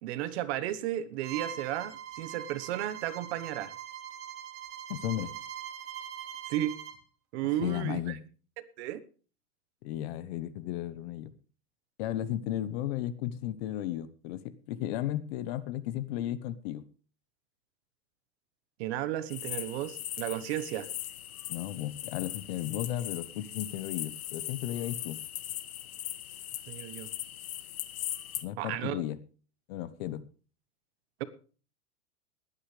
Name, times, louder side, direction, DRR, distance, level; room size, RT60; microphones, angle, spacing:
voice 1, 0.0-3.7 6.5-6.8 7.3-8.2 8.8-9.0 18.8-20.9 26.7-27.1 28.6-29.0, right 13 dB, 45° right, 1.3 m, -33 dB
Bowed string instrument, 1.2-7.0, right 10 dB, 30° right, 2.1 m, -42 dB
voice 2, 4.9-5.3 7.6-8.2 9.8-11.3 12.0-16.8 21.5-25.2 28.4-29.2 29.7-30.2, left 12 dB, 45° left, 1.1 m, -34 dB
sound 1, 19.3-28.4, left 13 dB, 70° left, 1.7 m, -39 dB
20.5 x 9.9 x 3.3 m
supercardioid pair, 150°, 44 cm